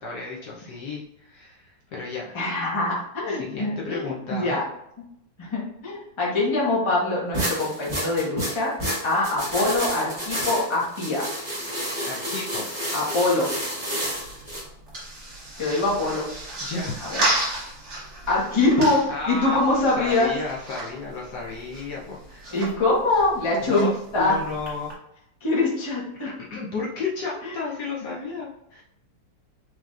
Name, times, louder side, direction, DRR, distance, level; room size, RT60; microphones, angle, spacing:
voice 1, 0.0-2.3 3.3-4.6 12.0-12.7 16.6-17.1 19.1-19.6 20.0-22.5 23.7-24.9 26.5-28.8, left 3 dB, 65° left, -3 dB, 1.3 m, -33 dB
voice 2, 2.3-4.6 5.4-8.7 9.0-11.3 12.9-13.5 15.6-16.2 17.0-17.2 18.3-19.0 19.3-20.3 22.5-23.9 24.1-24.3 25.4-26.3 27.4-27.5, left 2 dB, 20° left, -5 dB, 0.8 m, -23 dB
sound 1, 7.3-14.6, equal, 15° right, 1.2 m, -30 dB
sound 2, 14.1-24.9, right 1 dB, 40° right, 1.2 m, -34 dB
4.8 x 3.0 x 2.4 m, 0.77 s
omnidirectional pair, 2.1 m